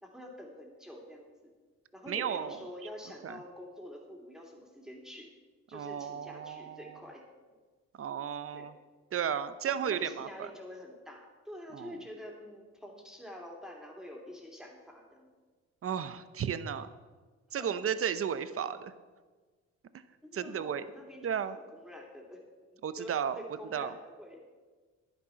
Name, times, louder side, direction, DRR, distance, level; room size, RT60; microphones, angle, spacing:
voice 1, 0.0-1.5 1.9-5.3 5.7-7.2 8.5-8.7 9.7-15.3 17.6-17.7 20.2-22.4 22.7-24.6, equal, ahead, 0 dB, 2.8 m, -47 dB
voice 2, 2.1-2.7 3.2-3.4 5.7-7.0 8.0-8.7 9.1-10.5 11.7-12.0 15.8-16.9 17.5-18.9 20.3-20.8 21.2-21.6 22.8-23.4 23.7-23.9, right 8 dB, 45° right, 13 dB, 0.8 m, -34 dB
10.5 x 9.8 x 5.8 m, 1.4 s
cardioid pair, 90°, 30 cm